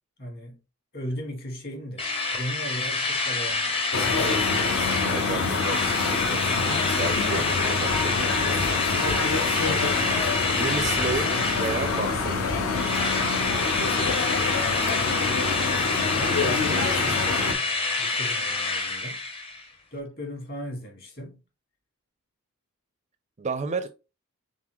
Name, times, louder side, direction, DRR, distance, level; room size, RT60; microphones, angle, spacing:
voice 1, 0.2-0.6 0.9-2.0 2.3-3.8 16.1-17.7 18.0-19.2 19.9-21.4, equal, 45° left, 1.6 m, -37 dB
Drill, 2.0-12.4 12.7-19.6, left 3 dB, 25° left, 0.7 m, -27 dB
sound 1, 3.9-17.5, left 4 dB, 65° left, 0.7 m, -26 dB
voice 2, 5.0-9.0 10.5-12.5 23.4-23.9, right 4 dB, 30° right, 0.4 m, -33 dB
3.9 x 3.7 x 3.0 m
head